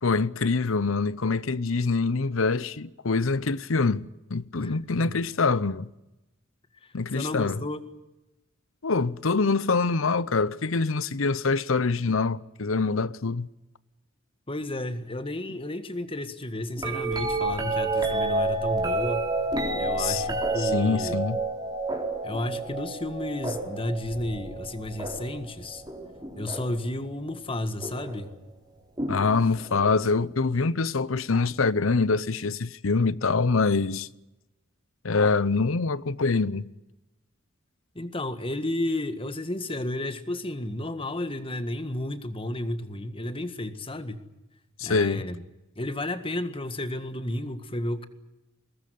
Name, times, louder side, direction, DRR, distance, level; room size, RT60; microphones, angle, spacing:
voice 1, 0.0-5.9 6.9-7.6 8.8-13.5 20.0-20.2 20.6-21.4 29.1-34.1 35.0-36.6 44.8-45.2, left 4 dB, 80° left, 0.8 m, -25 dB
voice 2, 4.6-5.1 7.1-7.8 14.5-19.3 19.8-21.3 22.2-25.8 26.4-28.3 38.0-44.2 44.8-45.4 45.8-48.1, left 1 dB, 25° left, 1.7 m, -32 dB
sound 1, 16.8-26.9 27.8-28.2 29.0-30.0 31.8-31.9, right 2 dB, 20° right, 3.9 m, -30 dB
22.5 x 19.0 x 9.4 m
head